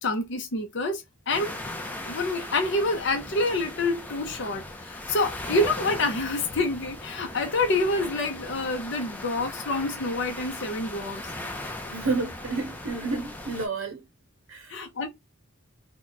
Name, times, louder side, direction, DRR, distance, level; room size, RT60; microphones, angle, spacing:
voice 1, 0.0-1.5 2.1-11.2 14.7-15.1, left 2 dB, 55° left, 0.6 m, -27 dB
sound 1, 1.3-13.7, left 1 dB, 10° left, 0.4 m, -38 dB
voice 2, 11.9-14.0 14.5-15.1, right 3 dB, 80° right, 0.7 m, -31 dB
3.0 x 2.2 x 3.9 m
head